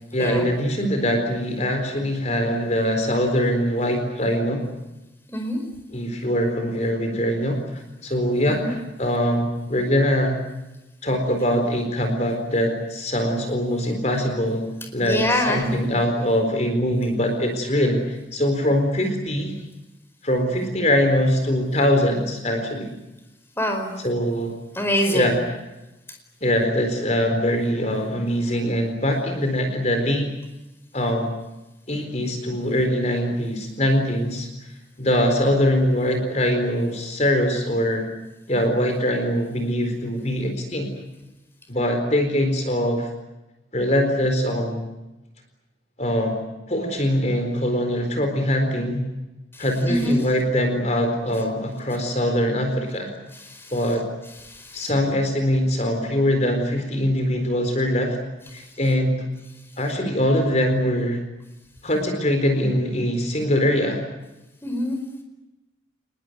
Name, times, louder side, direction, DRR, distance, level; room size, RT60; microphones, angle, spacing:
voice 1, 0.1-4.6 5.9-10.4 11.0-14.7 14.9-19.5 20.2-22.9 24.0-24.6 25.1-25.6 26.4-30.3 30.9-31.4 31.9-34.5 35.0-38.1 38.5-40.9 41.7-43.1 43.7-44.9 46.0-46.4 46.7-49.0 49.6-53.1 53.7-54.1 54.7-58.2 58.5-59.2 59.8-61.2 61.8-64.0, equal, 35° left, 5 dB, 4.3 m, -22 dB
voice 2, 5.3-5.6 8.5-8.7 15.0-15.7 23.6-23.9 24.7-25.3 49.5-50.2 53.5-53.7 54.5-54.8 64.6-65.0, left 1 dB, 15° left, 4 dB, 4.9 m, -24 dB
28.5 x 20.5 x 9.3 m, 1.0 s
head